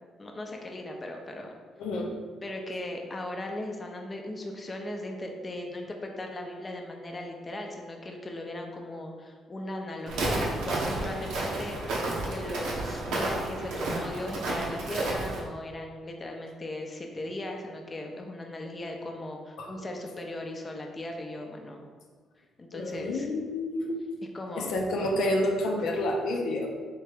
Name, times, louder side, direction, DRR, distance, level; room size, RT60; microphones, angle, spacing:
voice 1, 0.2-1.5 2.4-21.8 22.6-23.3 24.3-24.7, left 1 dB, 30° left, 2 dB, 0.5 m, -38 dB
voice 2, 1.8-2.1 19.6-19.7 22.7-24.0 24.6-26.7, left 1 dB, 80° left, 1 dB, 0.5 m, -29 dB
Walk footsteps, 10.1-15.4, right 2 dB, 85° right, 0.8 m, -31 dB
3.7 x 3.2 x 3.4 m, 1.5 s
cardioid pair, 90°, 0 cm